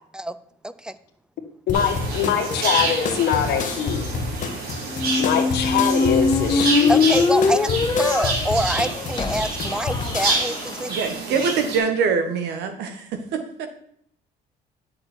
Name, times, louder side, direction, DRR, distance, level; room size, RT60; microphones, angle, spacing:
voice 1, 1.7-4.1 5.2-7.1, left 9 dB, 75° left, 5 dB, 1.6 m, -23 dB
sound 1, 1.7-10.4, left 4 dB, 50° left, 1.4 m, -29 dB
sound 2, 1.7-11.8, right 3 dB, 60° right, 3.5 m, -28 dB
sound 3, 4.9-10.8, left 4 dB, 25° left, 0.8 m, -22 dB
voice 2, 6.9-11.4, right 1 dB, 5° right, 15 dB, 0.5 m, -26 dB
voice 3, 10.9-13.7, right 5 dB, 80° right, 7 dB, 1.5 m, -24 dB
10.5 x 6.5 x 4.4 m, 0.68 s
cardioid pair, 110°, 17 cm